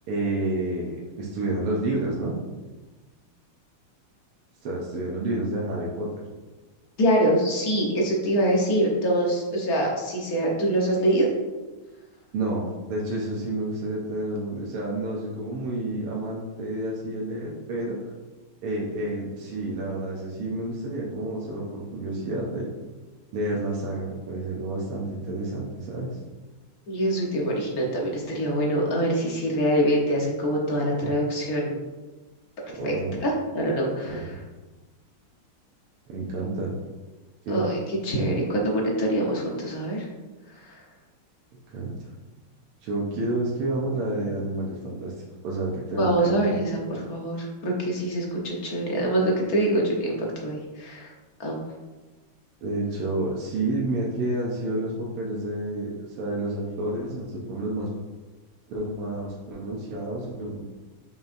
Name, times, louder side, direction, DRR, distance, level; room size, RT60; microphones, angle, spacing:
voice 1, 0.1-2.3 4.6-6.1 12.3-18.0 18.6-22.7 23.3-26.1 32.7-33.2 34.0-34.2 36.1-36.7 37.5-37.6 41.7-41.9 42.8-45.1 45.4-46.6 52.6-57.9 58.7-60.6, right 2 dB, 85° right, -4 dB, 1.8 m, -29 dB
voice 2, 7.0-11.3 26.9-31.8 32.8-32.9 33.2-34.2 37.5-40.1 40.5-40.8 46.0-51.1 51.4-51.6, right 1 dB, 50° left, -2 dB, 1.4 m, -24 dB
7.6 x 5.5 x 2.6 m, 1.2 s
omnidirectional pair, 2.4 m